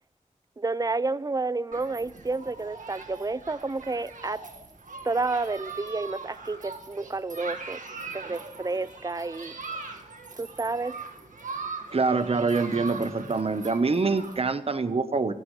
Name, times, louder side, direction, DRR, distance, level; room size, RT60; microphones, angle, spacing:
voice 1, 0.6-4.4 5.0-7.8 8.1-9.5 10.3-10.9, right 3 dB, 30° right, 0.5 m, -30 dB
Human group actions, 1.7-14.4, right 4 dB, 75° right, 1.9 m, -41 dB
voice 2, 11.9-15.3, right 4 dB, 50° right, 1.1 m, -25 dB
23.5 x 12.0 x 3.3 m
wide cardioid pair, 65°, 13 cm